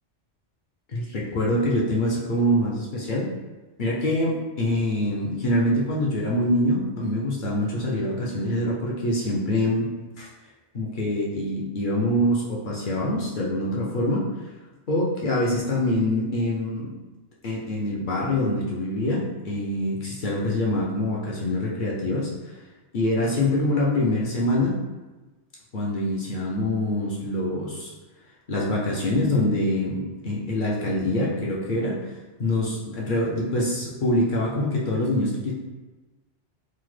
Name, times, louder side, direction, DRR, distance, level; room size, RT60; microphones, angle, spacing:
voice 1, 0.9-3.3 3.8-10.3 10.7-14.2 14.9-16.9 17.4-22.3 22.9-24.7 25.7-27.9 28.5-32.0 32.4-35.5, left 1 dB, 55° left, -4 dB, 0.6 m, -25 dB
3.7 x 2.1 x 3.1 m, 1.2 s
omnidirectional pair, 1.2 m